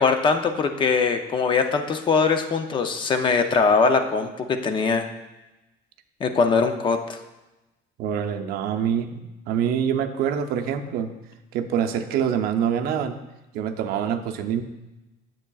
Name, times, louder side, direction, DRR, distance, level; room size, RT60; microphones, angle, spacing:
voice 1, 0.0-5.1 6.2-7.2, left 4 dB, 30° left, 7 dB, 0.5 m, -21 dB
voice 2, 8.0-11.1 11.5-13.2 13.5-14.6, right 8 dB, 65° right, 6 dB, 0.6 m, -25 dB
9.8 x 7.6 x 2.3 m, 1.0 s
cardioid pair, 155°, 17 cm